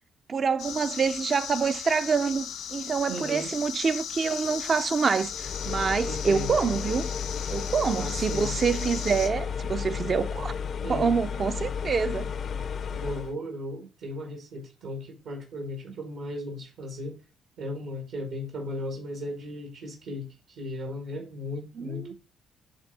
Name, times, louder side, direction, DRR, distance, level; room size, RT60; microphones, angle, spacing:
voice 1, 0.3-7.1 7.5-10.5 10.9-12.3 21.8-22.1, right 5 dB, 40° right, 0.4 m, -26 dB
sound 1, 0.6-9.3, left 8 dB, 90° left, 1.2 m, -37 dB
voice 2, 3.1-3.5 6.0-6.6 8.0-8.5 10.8-11.1 12.9-17.2 17.6-22.1, left 1 dB, 80° right, 1.9 m, -36 dB
sound 2, 5.3-13.3, left 6 dB, 55° left, 0.4 m, -33 dB
7.7 x 3.6 x 4.1 m
cardioid pair, 90°, 0 cm